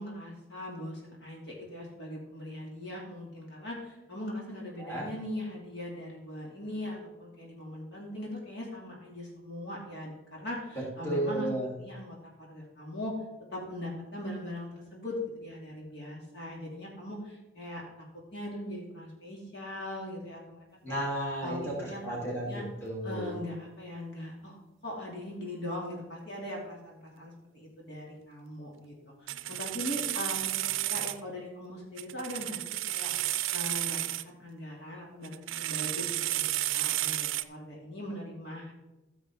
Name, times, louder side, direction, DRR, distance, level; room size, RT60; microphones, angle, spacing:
voice 1, 0.0-11.5 11.8-13.1 13.5-18.1 18.3-21.0 21.4-22.2 22.5-22.6 23.0-24.6 24.8-28.9 29.2-38.7, left 1 dB, 60° left, -3 dB, 2.8 m, -40 dB
voice 2, 11.0-11.7 20.8-21.6 22.0-23.3, right 1 dB, 10° left, -5 dB, 3.2 m, -33 dB
sound 1, 29.3-31.2 32.0-34.2 35.2-37.4, right 15 dB, 80° right, 0.5 m, -32 dB
14.5 x 7.3 x 3.7 m, 1.0 s
head